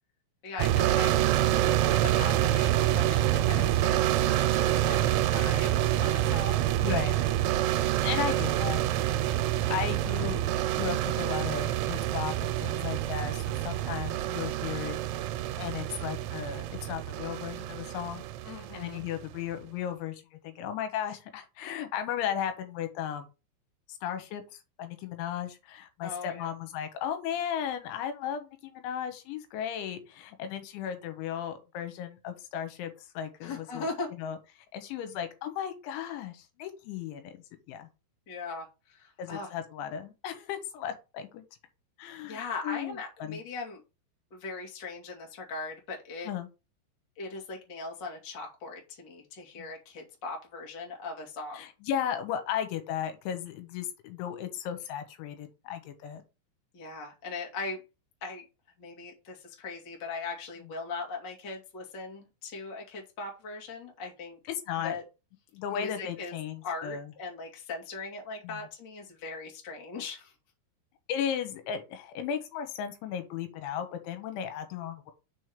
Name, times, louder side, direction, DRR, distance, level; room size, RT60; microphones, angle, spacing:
voice 1, 0.4-1.3 1.8-6.7 8.1-8.3 18.4-19.0 26.0-26.5 33.4-34.1 38.3-39.5 42.2-43.8 44.3-46.3 47.2-51.6 56.7-57.8 58.2-58.4 58.8-64.4 64.8-65.0 65.7-66.3 66.6-70.3, left 3 dB, 40° left, -1 dB, 1.7 m, -39 dB
sound 1, 0.6-19.2, right 13 dB, 85° right, 3.0 m, -27 dB
voice 2, 6.8-7.2 8.0-8.8 9.7-15.0 15.6-18.2 18.7-23.3 23.9-24.4 24.8-33.9 34.2-37.3 37.7-37.9 39.2-41.4 42.0-43.4 46.3-46.5 49.6-49.7 51.5-56.2 64.7-65.0 65.5-67.1 68.4-68.6 71.1-75.1, left 9 dB, 80° left, 8 dB, 3.4 m, -35 dB
6.3 x 4.6 x 5.1 m, 0.28 s
omnidirectional pair, 5.4 m